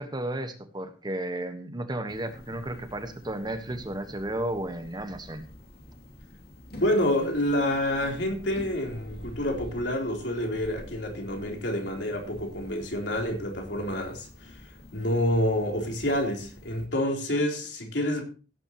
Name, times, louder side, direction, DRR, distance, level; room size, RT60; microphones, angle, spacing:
voice 1, 0.0-5.4, right 1 dB, 25° right, 1.4 m, -33 dB
sound 1, 2.1-16.9, left 1 dB, 60° left, 2.8 m, -47 dB
voice 2, 6.7-14.6 14.9-18.2, left 1 dB, 90° left, 3.7 m, -28 dB
17.0 x 9.7 x 3.0 m
head